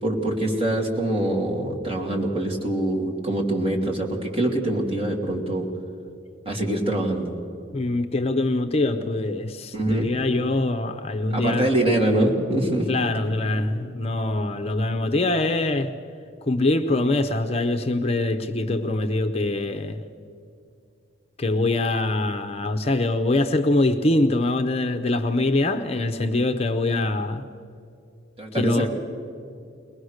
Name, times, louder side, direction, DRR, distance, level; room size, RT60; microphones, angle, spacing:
voice 1, 0.0-5.7 6.4-7.3 9.7-10.1 11.3-12.9 28.4-28.9, right 1 dB, 30° right, -1 dB, 2.9 m, -24 dB
voice 2, 7.7-11.7 12.9-15.9 16.4-20.0 21.4-27.5 28.5-28.9, left 2 dB, 30° left, 8 dB, 0.7 m, -23 dB
22.0 x 20.0 x 6.5 m, 2.5 s
head